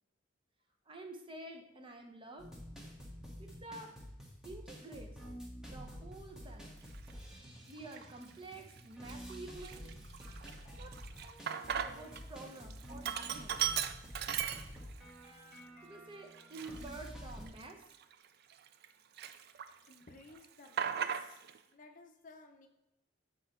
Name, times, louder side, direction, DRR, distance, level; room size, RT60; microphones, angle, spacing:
voice 1, 0.9-2.5 3.4-3.9 4.4-5.2 5.7-6.7 7.7-9.9 10.8-10.9 11.7-13.6 15.8-17.8, right 2 dB, 25° right, 3 dB, 0.7 m, -49 dB
sound 1, 2.4-17.5, equal, 5° right, 1.0 m, -49 dB
Sink (filling or washing), 6.9-7.1 7.8-8.3 8.7-8.8 9.1-12.2 12.5-15.1 15.5-15.6 16.3-18.9 19.2-19.9 20.2-21.6, right 9 dB, 55° right, 0.3 m, -38 dB
voice 2, 19.9-21.4 21.7-22.7, left 3 dB, 45° left, 4 dB, 0.6 m, -56 dB
7.0 x 3.9 x 4.3 m, 0.89 s
head